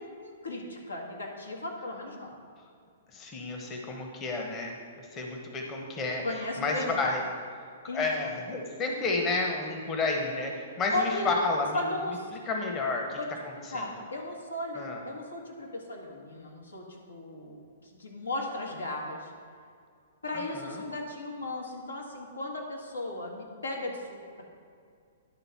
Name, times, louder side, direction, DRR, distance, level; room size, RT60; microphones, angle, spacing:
voice 1, 0.0-2.3 6.2-7.0 7.9-8.0 10.9-11.3 11.7-12.3 13.2-13.3 13.7-19.3 20.2-24.5, left 2 dB, 85° left, -1 dB, 1.6 m, -36 dB
voice 2, 3.1-7.2 7.9-10.5 10.8-11.8 12.3-13.2 13.6-13.9 14.7-15.0 20.3-20.8, left 3 dB, 25° left, 1 dB, 1.1 m, -31 dB
11.0 x 3.8 x 5.8 m, 2.3 s
figure-of-eight pair, 115°, 0 cm